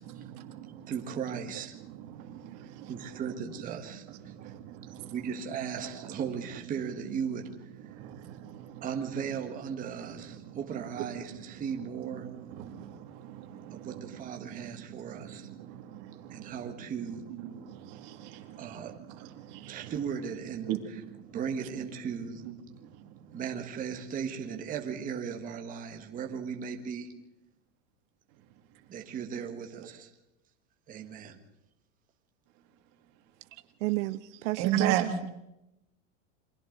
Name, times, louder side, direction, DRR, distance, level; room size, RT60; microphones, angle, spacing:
voice 1, 0.0-0.9 1.5-3.2 3.8-5.2 5.8-6.2 7.8-8.9 9.8-10.6 11.0-11.6 12.0-19.9 20.5-21.4 21.7-21.8 22.4-23.4 24.5-24.6 34.5-35.1, right 11 dB, 45° right, 2.5 m, -39 dB
voice 2, 0.9-1.8 2.9-4.5 5.0-7.7 8.8-12.3 13.7-15.5 16.3-17.2 18.6-19.0 19.7-20.8 21.3-22.5 23.3-27.1 28.9-30.1 30.9-31.4, right 7 dB, 20° right, 1.6 m, -37 dB
voice 3, 33.8-35.1, right 19 dB, 75° right, 0.8 m, -31 dB
28.5 x 24.0 x 3.9 m
supercardioid pair, 165°, 37 cm